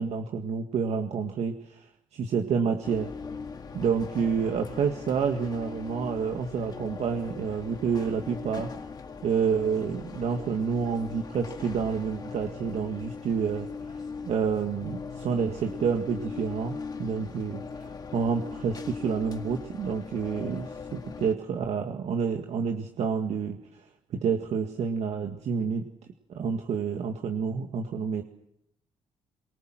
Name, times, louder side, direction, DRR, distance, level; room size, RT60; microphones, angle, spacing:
voice 1, 0.0-1.8 2.1-3.1 3.7-8.7 9.2-13.7 14.3-17.6 18.1-23.6 24.1-25.8 26.4-28.2, right 6 dB, 65° right, 3 dB, 1.9 m, -28 dB
sound 1, 2.8-21.3, left 5 dB, 35° left, 1.9 m, -40 dB
24.0 x 23.0 x 7.6 m, 0.78 s
cardioid pair, 125°, 12 cm